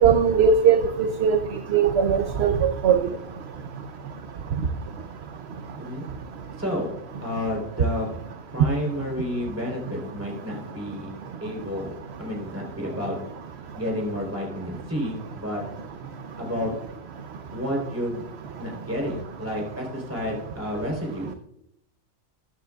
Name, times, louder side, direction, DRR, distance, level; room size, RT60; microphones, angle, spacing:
voice 1, 0.0-0.8 1.2-1.4 1.7-3.0, right 7 dB, 60° right, 8 dB, 0.8 m, -18 dB
voice 2, 6.6-6.9 7.2-8.1 8.5-11.1 11.4-13.2 13.7-15.6 16.4-16.7 17.5-18.2 18.6-21.3, left 1 dB, 10° right, -1 dB, 3.5 m, -30 dB
14.5 x 9.2 x 2.3 m, 0.77 s
omnidirectional pair, 1.4 m